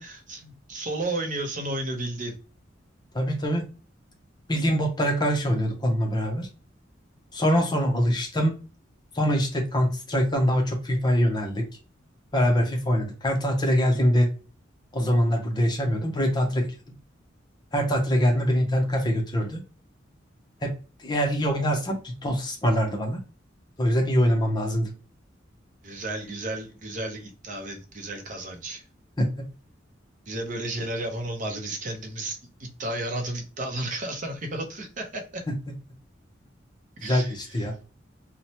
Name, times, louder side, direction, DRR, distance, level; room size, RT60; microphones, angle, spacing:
voice 1, 0.0-2.4 25.8-28.8 30.3-35.4 37.0-37.3, right 2 dB, 45° right, 0.6 m, -33 dB
voice 2, 3.1-3.6 4.5-6.5 7.3-8.5 9.1-11.6 12.3-14.3 14.9-16.7 17.7-19.6 20.6-20.7 21.0-23.2 23.8-24.9 29.2-29.3 37.0-37.7, equal, 25° left, 0.6 m, -23 dB
3.0 x 2.1 x 2.7 m
head